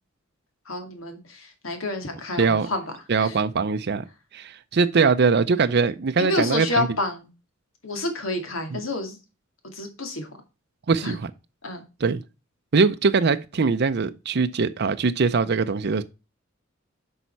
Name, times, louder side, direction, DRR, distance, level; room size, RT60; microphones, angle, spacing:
voice 1, 0.7-2.8 3.2-3.4 6.2-7.3 7.8-9.2 9.7-10.3 11.0-11.2 11.6-11.8, left 2 dB, 85° left, 2.4 m, -29 dB
voice 2, 2.4-2.7 3.1-4.0 4.3-6.9 8.7-8.8 10.9-11.3 12.0-12.2 12.7-16.0, right 4 dB, 55° right, 0.5 m, -22 dB
8.3 x 5.6 x 4.5 m
head